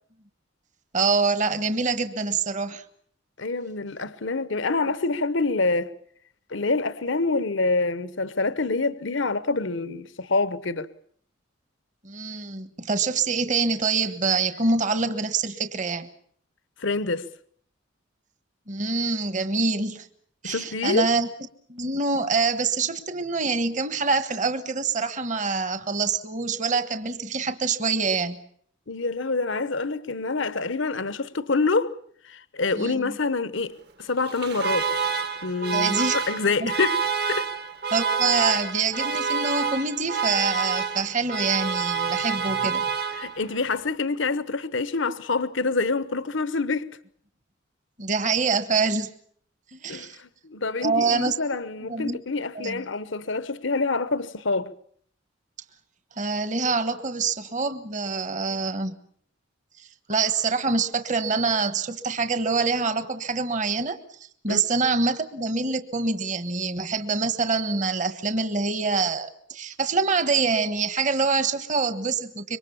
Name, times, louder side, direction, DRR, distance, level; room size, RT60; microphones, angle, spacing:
voice 1, 0.9-2.8 12.0-16.1 18.7-20.1 20.4-21.3 21.7-28.4 32.8-33.1 35.7-36.2 36.6-36.7 37.9-42.9 48.0-49.1 49.7-50.2 50.8-51.3 51.9-52.2 52.5-52.8 56.2-59.0 59.8-64.2 64.4-72.6, right 4 dB, 40° right, 1.4 m, -25 dB
voice 2, 3.4-5.9 6.5-10.9 16.8-17.3 20.4-21.1 28.9-31.9 32.2-33.7 34.0-34.9 35.4-37.0 37.3-37.5 43.2-46.9 49.9-54.7 64.5-64.6, left 3 dB, 70° left, 1.1 m, -26 dB
Alarm, 34.2-43.6, right 5 dB, 55° right, 1.5 m, -28 dB
26.5 x 23.5 x 7.1 m
head